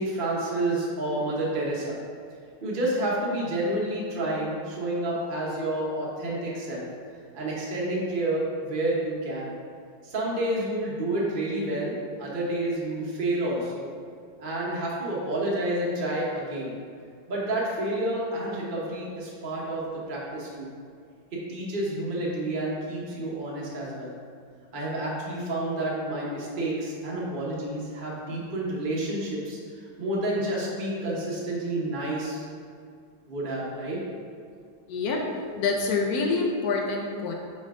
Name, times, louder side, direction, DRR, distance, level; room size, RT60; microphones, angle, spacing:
voice 1, 0.0-2.0 2.6-6.9 7.3-9.5 10.0-11.9 12.2-13.9 14.4-16.7 17.3-20.7 21.3-24.1 24.7-32.4 33.3-34.0, right 1 dB, 40° right, -5 dB, 0.7 m, -29 dB
voice 2, 34.9-35.2 35.6-37.3, left 4 dB, 80° left, 0 dB, 0.8 m, -26 dB
6.4 x 4.2 x 3.6 m, 2.2 s
omnidirectional pair, 2.4 m